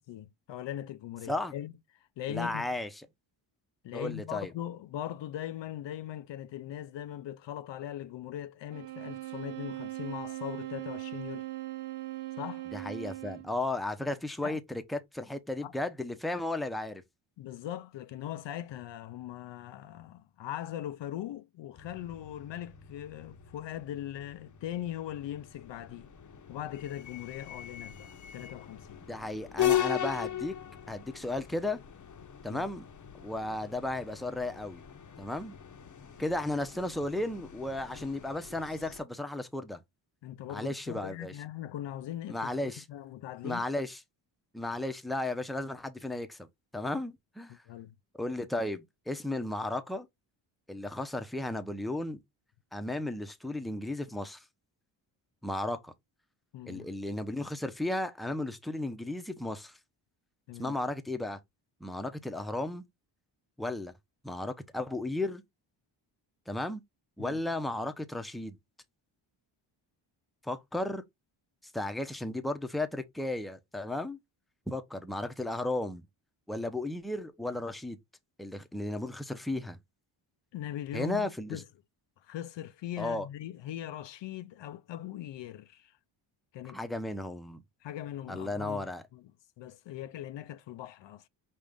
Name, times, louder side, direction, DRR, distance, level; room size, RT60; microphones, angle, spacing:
voice 1, 0.0-2.7 3.8-11.5 12.4-12.7 14.4-14.6 15.6-15.7 17.4-26.1 26.5-29.0 32.5-32.6 40.2-43.6 47.5-47.9 56.5-56.9 60.5-60.8 67.2-67.4 80.5-81.6 82.2-86.0 86.5-86.8 87.8-89.3 89.6-91.3, left 12 dB, 60° left, 0.5 m, -40 dB
voice 2, 2.3-2.9 3.9-4.5 12.7-17.0 29.1-30.5 30.9-31.8 32.4-32.8 33.2-34.8 35.2-35.5 36.2-39.8 40.5-41.3 42.3-42.8 43.4-44.0 44.5-46.5 46.7-47.6 48.2-50.1 50.7-52.2 52.7-54.4 55.4-55.9 56.6-59.8 60.6-61.4 61.8-62.8 63.6-63.9 64.2-65.4 66.5-66.8 67.2-68.6 70.4-71.0 71.7-74.2 74.7-76.0 76.5-78.0 78.4-79.8 80.9-81.6 83.0-83.3 86.7-87.6 88.3-89.0, left 2 dB, ahead, 0.7 m, -34 dB
sound 1, 8.7-13.6, right 18 dB, 85° right, 1.0 m, -40 dB
sound 2, 21.7-39.0, left 11 dB, 40° left, 0.8 m, -39 dB
5.4 x 2.4 x 3.5 m
cardioid pair, 70°, 49 cm